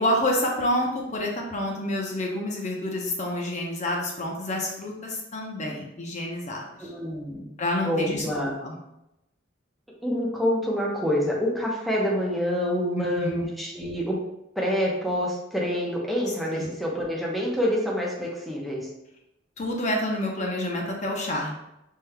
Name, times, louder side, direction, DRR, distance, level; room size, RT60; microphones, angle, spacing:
voice 1, 0.0-6.9 7.6-8.8 12.9-13.5 16.5-16.7 19.6-21.5, left 1 dB, 40° left, 0 dB, 0.7 m, -28 dB
voice 2, 6.8-7.5 7.8-8.5 10.0-14.2 14.6-18.9, equal, ahead, -4 dB, 0.8 m, -27 dB
6.0 x 3.6 x 2.2 m, 0.88 s
head